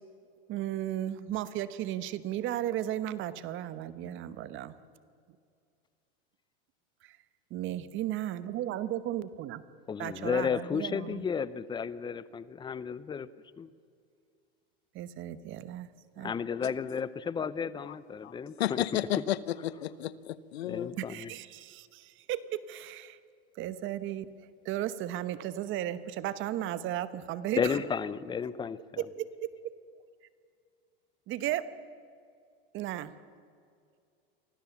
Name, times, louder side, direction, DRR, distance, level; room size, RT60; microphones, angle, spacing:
voice 1, 0.5-4.7 7.5-9.6 10.0-11.2 14.9-15.9 16.2-16.3 21.0-23.2 23.6-24.3 24.6-27.8 29.0-29.7 31.3-31.6 32.7-33.1, right 12 dB, 40° right, 1.1 m, -35 dB
voice 2, 9.9-13.3 13.6-13.7 16.2-18.8 20.7-21.3 27.6-29.0, left 6 dB, 15° left, 0.6 m, -33 dB
voice 3, 18.2-21.0, left 13 dB, 90° left, 0.9 m, -33 dB
24.5 x 15.5 x 7.1 m
supercardioid pair, 125°, 31 cm